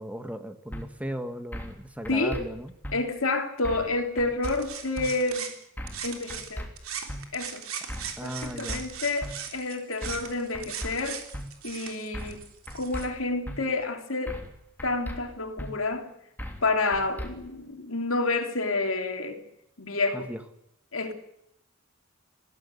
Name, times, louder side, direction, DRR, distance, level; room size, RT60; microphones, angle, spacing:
voice 1, 0.0-2.7 8.2-8.9 20.1-20.4, equal, 5° right, 9 dB, 1.8 m, -36 dB
sound 1, 0.7-0.8 1.5-1.8 2.1-2.4 2.8-3.0 3.6-3.9 4.2-4.6 5.0-5.1 5.8-6.0 6.3-6.7 7.1-7.2 7.9-8.1 8.4-8.8 9.2-9.3 10.0-10.3 10.5-10.9 11.3-11.5 12.1-12.4 12.7-13.1 13.5-13.6 14.3-14.5 14.8-15.2 15.6-15.7 16.4-16.6 16.9-17.3, equal, 10° left, 2.9 m, -36 dB
voice 2, 2.1-2.4 2.9-5.5 6.0-6.6 7.3-7.6 8.2-11.2 11.6-12.4 12.7-14.3 14.8-16.1 16.6-19.4 19.8-20.3 20.9-21.1, left 3 dB, 75° left, 5 dB, 3.2 m, -29 dB
sound 2, 4.4-6.5 6.8-13.1, right 8 dB, 85° right, 3.4 m, -39 dB
20.0 x 16.5 x 9.8 m, 0.77 s
head